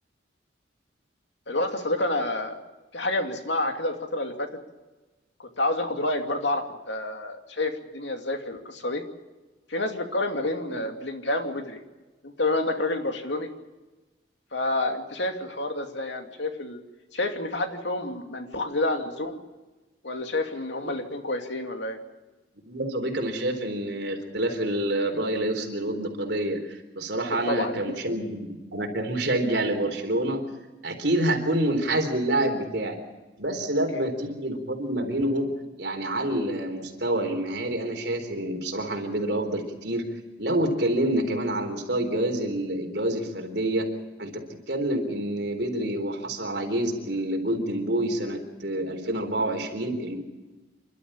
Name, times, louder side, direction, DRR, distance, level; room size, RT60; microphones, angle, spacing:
voice 1, 1.5-2.6 2.9-4.5 5.4-9.0 9.7-11.8 12.2-13.5 14.5-16.8 17.1-19.4 20.0-22.0 27.5-27.8, left 2 dB, 75° left, 5 dB, 2.6 m, -29 dB
voice 2, 22.7-30.4 30.8-33.0 33.4-35.5 35.8-40.1 40.4-43.9 44.2-44.4 44.7-50.2, right 1 dB, 65° right, 3 dB, 4.0 m, -27 dB
28.5 x 12.5 x 8.9 m, 1.2 s
head